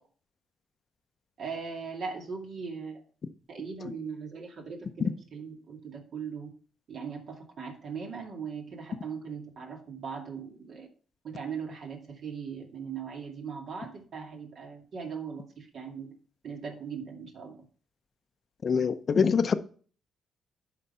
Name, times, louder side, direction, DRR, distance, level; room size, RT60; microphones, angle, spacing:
voice 1, 1.4-3.0 3.5-6.5 6.9-10.9 11.2-16.1 16.4-17.6, right 6 dB, 60° right, 2.3 m, -39 dB
voice 2, 18.6-19.6, left 6 dB, 45° left, 0.7 m, -24 dB
11.0 x 4.0 x 5.5 m
cardioid pair, 90°, 0 cm